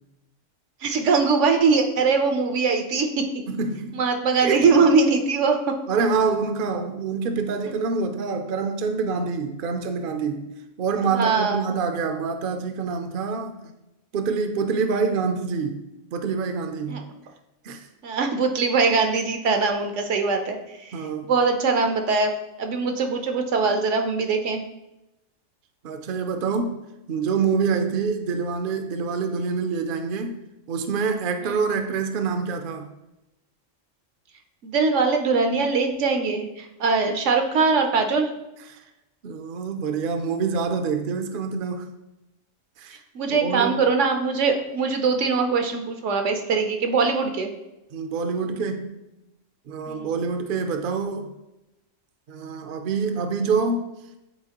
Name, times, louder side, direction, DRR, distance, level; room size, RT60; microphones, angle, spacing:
voice 1, 0.8-3.3 3.9-5.8 11.1-11.6 16.9-17.0 18.0-20.6 20.8-21.0 21.3-22.3 22.6-24.6 31.4-31.6 34.6-38.3 43.1-47.5 49.9-50.1, right 4 dB, 70° right, 5 dB, 1.1 m, -22 dB
voice 2, 3.5-4.0 4.4-4.8 5.9-10.5 10.8-13.7 14.1-15.8 16.1-17.0 17.6-17.9 20.9-21.3 25.8-26.8 27.1-30.4 30.7-32.9 38.7-38.8 39.2-41.8 42.8-43.0 43.3-43.8 47.9-49.0 49.7-51.3 52.3-53.9, right 5 dB, 55° right, 5 dB, 0.7 m, -26 dB
8.7 x 4.1 x 2.9 m, 0.93 s
omnidirectional pair, 1.3 m